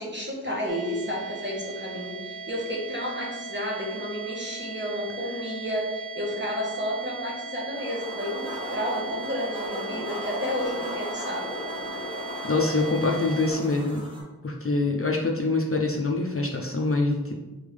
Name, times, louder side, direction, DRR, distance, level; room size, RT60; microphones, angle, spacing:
voice 1, 0.0-8.4 8.7-11.4, equal, 30° right, -4 dB, 1.4 m, -31 dB
sound 1, 0.7-13.5, right 3 dB, 65° right, 0.6 m, -38 dB
sound 2, 7.7-14.2, equal, 15° right, 1.5 m, -36 dB
voice 2, 12.4-14.0 14.4-17.3, left 3 dB, 40° left, -1 dB, 0.5 m, -25 dB
3.6 x 3.4 x 3.4 m, 1.1 s
wide cardioid pair, 45°, 35 cm